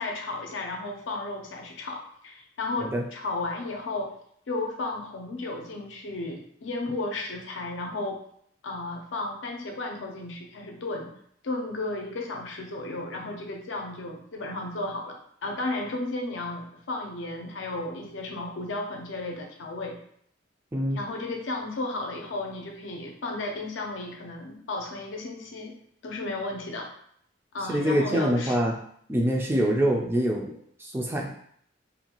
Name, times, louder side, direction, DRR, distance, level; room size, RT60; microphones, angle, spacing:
voice 1, 0.0-4.1 4.5-8.2 8.6-11.1 11.4-20.0 20.9-25.7 26.0-26.9 27.5-28.6, left 2 dB, 80° left, 2 dB, 0.5 m, -34 dB
voice 2, 27.7-28.7 29.1-31.3, equal, 10° right, 0 dB, 0.3 m, -25 dB
2.6 x 2.2 x 2.9 m, 0.65 s
head